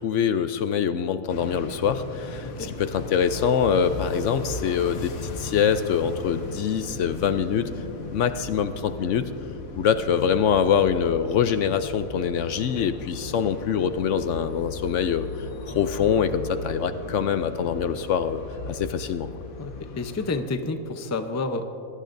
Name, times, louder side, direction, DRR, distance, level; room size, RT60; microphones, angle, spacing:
voice 1, 0.0-7.7 8.1-9.3 9.8-15.3 15.7-19.3, left 7 dB, 65° left, 10 dB, 0.9 m, -24 dB
sound 1, 1.3-20.4, left 3 dB, 90° left, 1.5 m, -37 dB
voice 2, 19.6-21.7, left 3 dB, 20° left, 7 dB, 0.5 m, -30 dB
24.5 x 18.0 x 2.6 m, 2.7 s
omnidirectional pair, 1.4 m